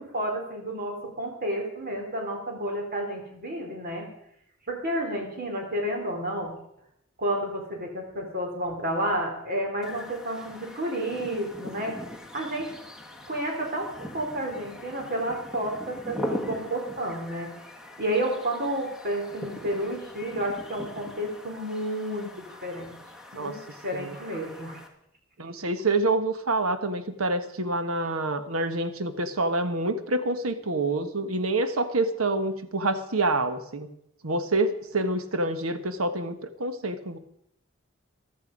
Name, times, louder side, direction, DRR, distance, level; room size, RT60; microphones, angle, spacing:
voice 1, 0.0-4.1 4.7-6.5 7.2-12.0 12.3-12.7 13.3-17.5 18.0-23.0 23.3-23.6 23.8-24.8, right 1 dB, 45° right, 2 dB, 3.7 m, -31 dB
sound 1, 9.8-24.9, left 1 dB, ahead, 1.8 m, -41 dB
voice 2, 25.4-33.9 34.2-37.2, right 2 dB, 90° right, 10 dB, 1.3 m, -27 dB
14.5 x 13.0 x 5.3 m, 0.74 s
head